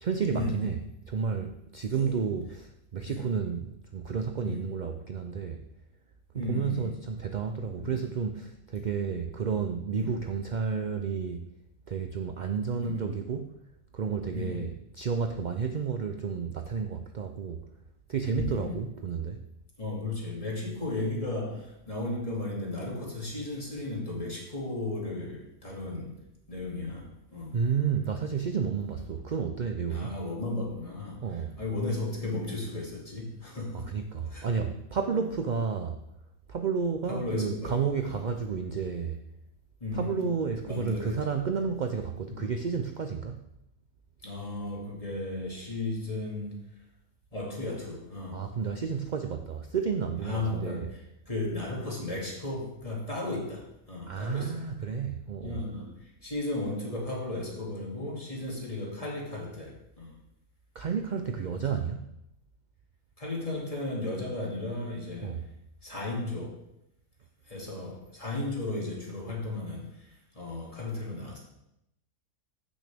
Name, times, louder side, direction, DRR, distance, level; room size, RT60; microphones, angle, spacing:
voice 1, 0.0-0.8 1.1-5.6 6.3-11.4 11.9-13.6 13.9-17.6 18.1-19.4 27.5-30.1 31.2-31.6 33.7-36.0 36.5-39.2 39.9-43.4 48.3-50.9 54.1-55.6 60.7-62.1 65.2-65.4, right 6 dB, 60° right, 6 dB, 0.4 m, -31 dB
voice 2, 1.9-2.2 3.1-3.2 4.4-4.6 6.3-6.9 7.8-8.0 9.9-10.1 12.8-13.0 14.3-14.7 18.3-18.8 19.8-26.2 26.5-27.6 29.9-33.9 34.3-34.5 35.1-35.3 37.1-38.2 39.8-40.3 40.7-41.3 42.3-42.5 44.2-46.6 47.3-48.5 50.2-51.0 51.3-54.7 55.4-60.1 61.6-61.7 63.2-65.4 65.8-66.6 67.4-71.4, left 2 dB, 25° left, -3 dB, 2.5 m, -35 dB
15.0 x 6.3 x 3.5 m, 0.81 s
omnidirectional pair, 1.5 m